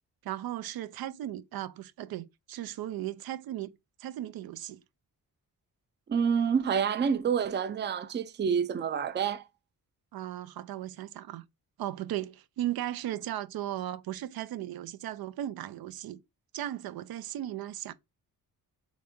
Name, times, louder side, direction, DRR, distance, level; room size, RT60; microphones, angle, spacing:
voice 1, 0.2-3.7 4.0-4.8 10.1-11.4 11.8-16.2 16.5-17.9, right 13 dB, 85° right, 0.6 m, -36 dB
voice 2, 6.1-9.5, right 7 dB, 30° right, 0.4 m, -28 dB
4.1 x 3.6 x 3.5 m
wide cardioid pair, 135°, 36 cm